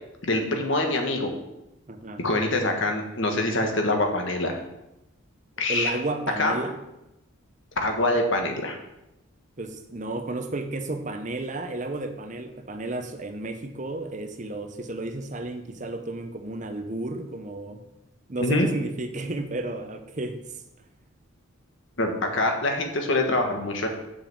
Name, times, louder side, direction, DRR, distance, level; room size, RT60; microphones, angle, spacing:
voice 1, 0.2-1.3 2.2-4.6 5.6-5.9 6.4-6.5 7.8-8.8 18.4-18.7 22.0-23.9, left 2 dB, 60° left, 3 dB, 1.5 m, -24 dB
voice 2, 1.9-2.2 5.7-6.8 9.6-17.8 18.3-20.5, right 2 dB, 35° right, 7 dB, 0.8 m, -32 dB
7.1 x 5.5 x 7.5 m, 0.92 s
head